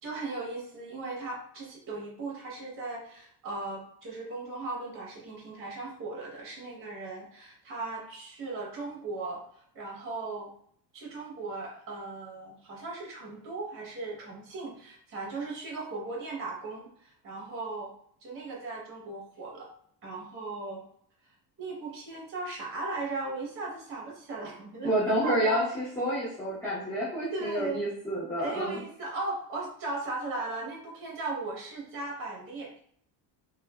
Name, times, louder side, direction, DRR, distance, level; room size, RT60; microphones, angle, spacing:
voice 1, 0.0-9.4 9.7-10.5 10.9-17.9 18.2-19.7 20.0-20.8 21.6-24.9 25.2-25.7 27.3-27.8 28.4-32.7, right 3 dB, 30° right, -3 dB, 0.8 m, -37 dB
voice 2, 24.8-28.8, equal, 5° left, -11 dB, 0.7 m, -29 dB
3.1 x 2.3 x 2.2 m, 0.65 s
cardioid pair, 165°, 44 cm